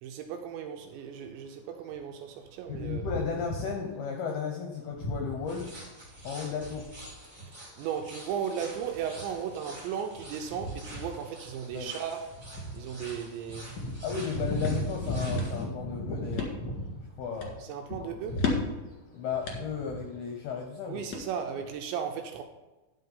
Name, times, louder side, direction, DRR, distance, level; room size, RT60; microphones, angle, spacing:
voice 1, 0.0-3.1 7.4-12.2 12.7-13.7 17.6-18.5 20.9-22.4, right 8 dB, 80° right, 2.8 m, -36 dB
sound 1, 2.6-3.9 4.9-6.6 7.2-7.5 7.9-17.5 17.9-18.7 19.3-20.0, equal, 25° left, 2.0 m, -37 dB
voice 2, 2.7-5.7 6.2-6.9 11.7-11.9 14.0-16.5 17.2-17.5 18.0-18.1 19.1-21.0, left 6 dB, 75° left, 2.3 m, -34 dB
sound 2, 5.5-15.6, right 1 dB, 35° right, 0.7 m, -48 dB
sound 3, 14.2-21.7, left 5 dB, 60° left, 2.1 m, -38 dB
11.0 x 5.8 x 5.5 m
omnidirectional pair, 5.6 m